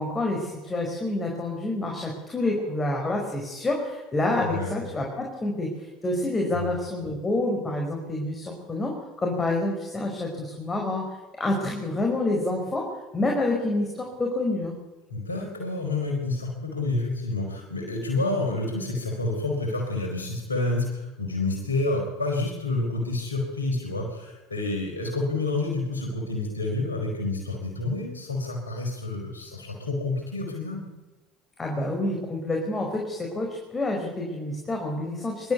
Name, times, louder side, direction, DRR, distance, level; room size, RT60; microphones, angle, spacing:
voice 1, 0.0-8.9 9.2-12.9 13.1-14.7 31.6-35.5, left 2 dB, 20° left, 0 dB, 5.2 m, -28 dB
voice 2, 4.4-4.8 6.5-6.7 15.1-30.8, left 2 dB, 90° left, 2 dB, 4.6 m, -29 dB
25.0 x 13.0 x 8.4 m, 1.1 s
figure-of-eight pair, 70°, 0 cm